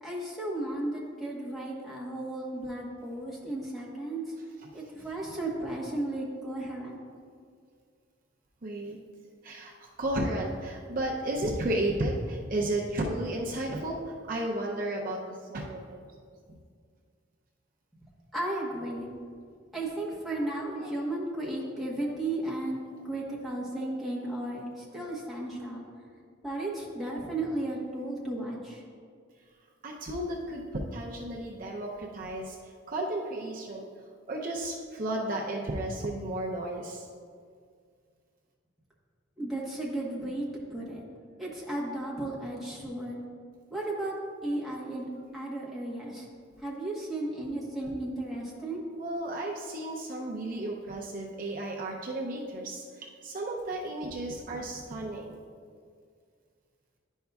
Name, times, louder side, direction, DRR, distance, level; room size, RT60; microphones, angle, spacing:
voice 1, 0.0-4.2 4.7-6.9 18.3-19.1 19.7-25.8 26.4-28.8 39.4-41.0 41.4-43.2 43.7-44.1 44.4-46.3 46.6-48.8, right 1 dB, ahead, -6 dB, 1.1 m, -34 dB
voice 2, 8.6-9.0 9.4-16.0 16.5-16.6 20.6-21.1 22.9-23.0 29.8-32.6 32.9-33.9 34.3-37.1 49.0-55.4, right 1 dB, 45° right, -1 dB, 0.6 m, -33 dB
10.5 x 5.4 x 2.3 m, 2.1 s
head